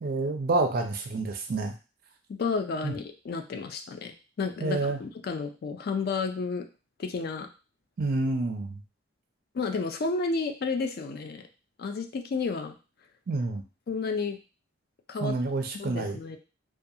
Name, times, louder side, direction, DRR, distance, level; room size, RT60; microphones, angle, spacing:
voice 1, 0.0-1.7 2.8-2.9 4.6-5.0 8.0-8.8 13.3-13.6 15.2-16.2, right 2 dB, 45° right, 5 dB, 0.4 m, -28 dB
voice 2, 2.3-6.6 7.0-7.5 9.5-11.4 11.8-12.8 13.9-14.4 15.1-15.3 15.7-16.4, left 4 dB, 50° left, 5 dB, 0.3 m, -31 dB
2.4 x 2.3 x 2.7 m, 0.32 s
head